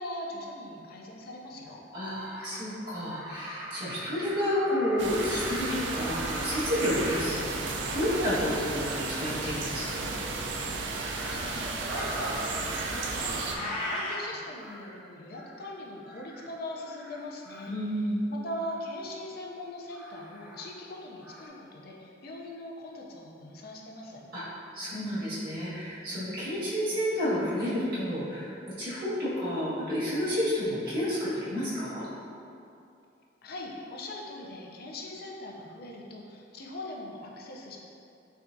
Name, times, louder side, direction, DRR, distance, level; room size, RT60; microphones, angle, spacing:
voice 1, 0.0-1.8 11.3-17.7 18.3-24.2 33.4-37.8, left 1 dB, 60° left, -1 dB, 0.5 m, -41 dB
Crow, 1.7-1.8 2.1-2.7 3.0-9.1 10.7-15.0 15.3-15.7 16.0-16.5 16.8-17.8 18.6-18.9 19.9-21.0 21.2-21.5, equal, 5° right, 0.4 m, -41 dB
voice 2, 1.9-10.2 17.7-18.2 24.3-24.4 24.7-32.1, equal, 55° right, -12 dB, 1.5 m, -30 dB
sound 1, 5.0-13.6, right 3 dB, 90° right, 0.4 m, -33 dB
Meow, 13.5-14.3, left 2 dB, 75° left, 1.3 m, -34 dB
5.7 x 2.4 x 2.6 m, 2.6 s
head